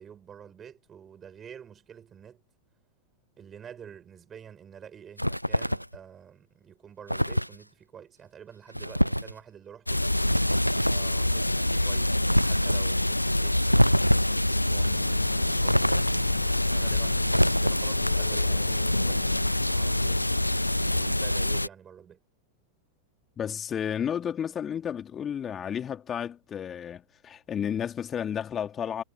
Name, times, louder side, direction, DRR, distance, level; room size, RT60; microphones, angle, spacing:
voice 1, 0.0-2.4 3.4-10.0 10.8-13.6 16.7-20.4 20.9-22.2, right 8 dB, 25° right, 5.1 m, -48 dB
sound 1, 5.2-6.0 7.1-7.6 8.7-9.3 10.2-11.1 12.3-12.8 13.7-14.4 15.7-16.4 17.3-18.0, equal, 90° right, 0.4 m, -25 dB
sound 2, 9.9-21.7, left 1 dB, 85° left, 0.9 m, -26 dB
sound 3, 14.7-21.1, left 13 dB, 55° left, 0.9 m, -39 dB
voice 2, 23.4-29.0, left 8 dB, 25° left, 2.7 m, -32 dB
figure-of-eight pair, 90°, 0 cm